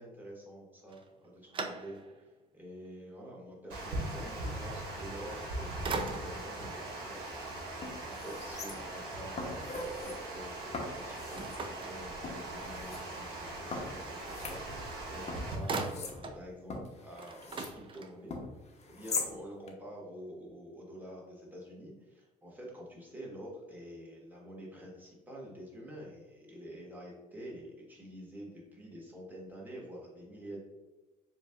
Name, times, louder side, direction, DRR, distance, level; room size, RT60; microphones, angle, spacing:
voice 1, 0.0-2.3 2.5-7.5 8.0-18.3 18.9-30.6, equal, 10° right, -3 dB, 1.3 m, -48 dB
sound 1, 0.9-2.3 2.8-2.9 5.2-5.5 5.8-6.6 11.4-12.6 14.7-14.8 15.1-16.4 16.8-16.9 17.1-18.4, right 3 dB, 30° right, 0.5 m, -40 dB
Water, 3.7-15.6, right 2 dB, 70° right, 1.3 m, -40 dB
sound 2, 7.3-7.4 7.8-9.0 9.4-10.2 10.7-11.6 12.2-13.0 13.7-15.0 15.3-17.8 18.3-19.3 19.7-19.8, left 3 dB, 40° left, 0.8 m, -41 dB
7.1 x 2.4 x 2.4 m, 1.2 s
cardioid pair, 110°, 17 cm